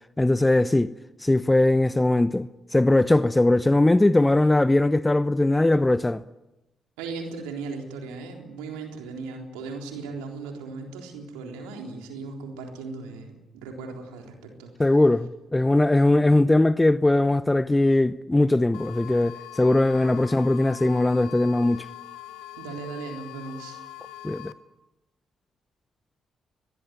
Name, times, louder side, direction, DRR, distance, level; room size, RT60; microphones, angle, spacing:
voice 1, 0.2-6.2 14.8-21.9 24.2-24.5, left 2 dB, 15° left, 0.8 m, -20 dB
voice 2, 7.0-14.7 22.6-23.8, right 4 dB, 80° right, 3.8 m, -37 dB
sound 1, 18.7-24.5, left 14 dB, 75° left, 1.3 m, -42 dB
22.5 x 22.0 x 9.3 m
hypercardioid pair, 45°, 0 cm